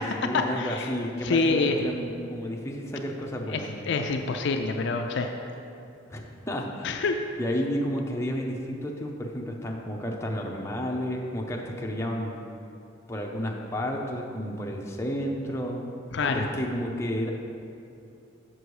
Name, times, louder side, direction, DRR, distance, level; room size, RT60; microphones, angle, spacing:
voice 1, 0.0-3.7 6.1-7.0 7.4-12.4 13.1-15.8 16.2-17.3, equal, 15° left, -1 dB, 0.6 m, -31 dB
voice 2, 0.6-0.9 1.2-1.8 3.5-3.6 3.9-5.3 6.8-7.2 16.1-16.5, left 4 dB, 60° left, 4 dB, 0.4 m, -26 dB
6.6 x 6.1 x 4.7 m, 2.6 s
head